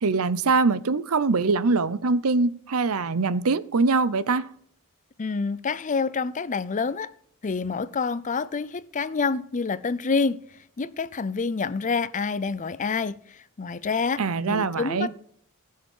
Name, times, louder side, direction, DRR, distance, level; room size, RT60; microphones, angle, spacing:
voice 1, 0.0-4.5 14.2-15.1, right 4 dB, 80° right, 0.7 m, -23 dB
voice 2, 5.2-7.1 7.4-10.4 10.8-15.1, left 4 dB, 35° left, 0.5 m, -27 dB
16.5 x 6.5 x 5.5 m
head